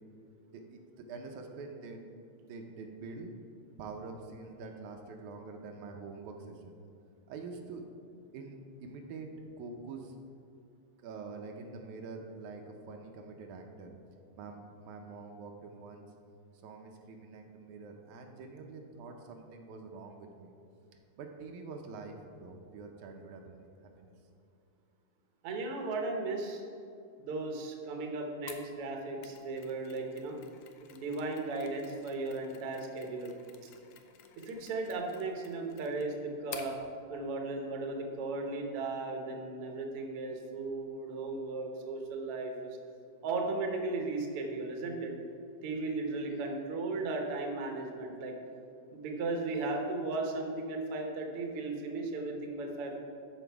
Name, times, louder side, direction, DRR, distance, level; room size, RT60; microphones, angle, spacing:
voice 1, 0.5-2.1 2.4-3.3 3.8-6.8 7.3-7.9 8.3-10.2 11.0-14.0 14.4-16.0 16.6-20.5 21.2-24.1, right 4 dB, 80° right, 3 dB, 2.2 m, -46 dB
voice 2, 25.4-26.6 27.2-30.4 30.9-33.3 34.4-36.8 37.1-42.8 43.2-45.1 45.6-48.3 48.9-53.0, right 3 dB, 60° right, 2 dB, 1.7 m, -36 dB
Mechanisms, 28.5-36.8, left 8 dB, 75° left, 1.5 m, -52 dB
12.5 x 5.0 x 4.6 m, 2.5 s
omnidirectional pair, 3.3 m